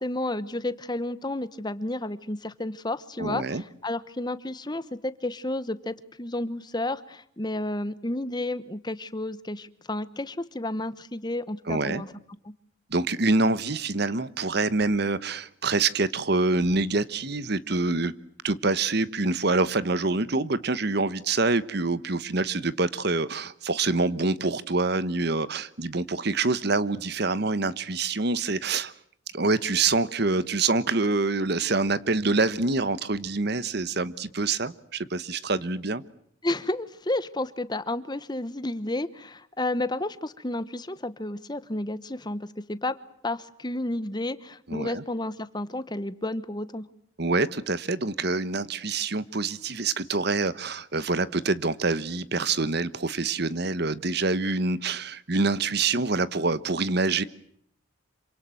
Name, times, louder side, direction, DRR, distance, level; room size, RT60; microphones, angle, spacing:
voice 1, 0.0-12.1 36.4-43.0 43.2-46.8, left 1 dB, 20° left, 14 dB, 1.0 m, -31 dB
voice 2, 3.2-3.6 11.7-12.0 12.9-18.1 18.4-28.9 29.3-36.0 44.7-45.0 47.2-57.2, right 3 dB, 55° right, 16 dB, 1.1 m, -26 dB
27.0 x 25.5 x 7.7 m, 0.67 s
head